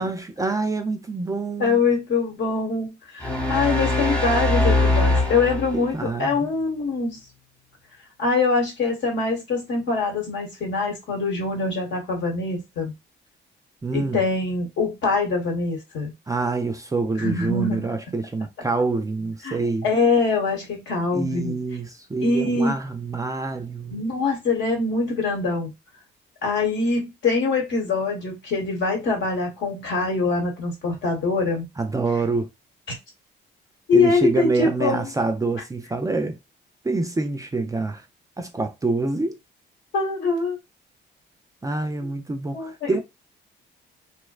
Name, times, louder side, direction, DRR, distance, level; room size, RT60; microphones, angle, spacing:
voice 1, 0.0-1.8 5.7-6.5 13.8-14.2 16.3-19.9 21.1-24.0 31.8-32.5 33.9-36.4 36.8-38.0 38.4-39.3 41.6-43.0, right 3 dB, 15° right, 0.3 m, -26 dB
voice 2, 1.6-7.2 8.2-12.9 13.9-16.1 17.2-17.9 19.4-21.5 22.2-22.8 23.9-25.7 26.4-31.7 33.9-35.1 39.9-40.6 42.5-43.0, left 3 dB, 65° left, 1.1 m, -24 dB
sound 1, 3.2-6.0, left 2 dB, 5° left, 0.9 m, -22 dB
2.6 x 2.1 x 2.3 m
cardioid pair, 90°, 20 cm